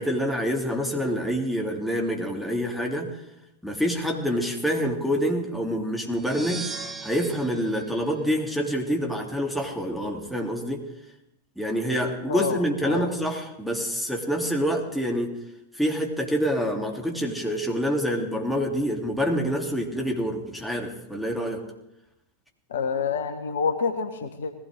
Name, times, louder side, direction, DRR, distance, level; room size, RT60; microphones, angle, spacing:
voice 1, 0.0-3.1 3.6-6.7 7.0-10.8 11.6-15.3 15.7-21.6, equal, ahead, 0 dB, 3.2 m, -26 dB
sound 1, 6.1-8.9, right 4 dB, 20° right, 1.6 m, -39 dB
voice 2, 12.3-13.1 22.7-24.5, left 6 dB, 60° left, 9 dB, 1.3 m, -28 dB
20.0 x 16.5 x 3.8 m, 0.87 s
figure-of-eight pair, 90°, 0 cm